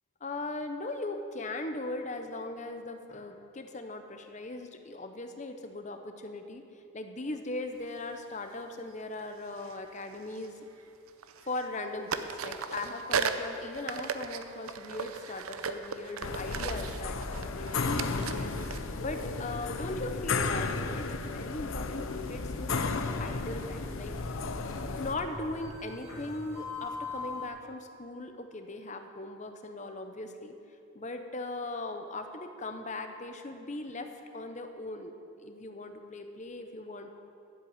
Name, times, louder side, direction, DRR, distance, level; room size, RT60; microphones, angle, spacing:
voice 1, 0.2-6.6 6.9-10.6 11.4-18.5 19.0-20.7 21.0-22.9 23.2-24.1 24.8-30.5 30.9-34.1 34.3-37.1, left 2 dB, 35° left, 6 dB, 0.8 m, -39 dB
sound 1, 7.9-8.1 9.5-10.8 11.1-11.8 12.1-19.8, right 5 dB, 80° right, 0.7 m, -37 dB
sound 2, 16.2-25.2, left 4 dB, 70° left, 0.7 m, -34 dB
sound 3, 22.2-27.5, left 3 dB, 15° left, 2.3 m, -43 dB
12.0 x 7.7 x 7.9 m, 2.7 s
head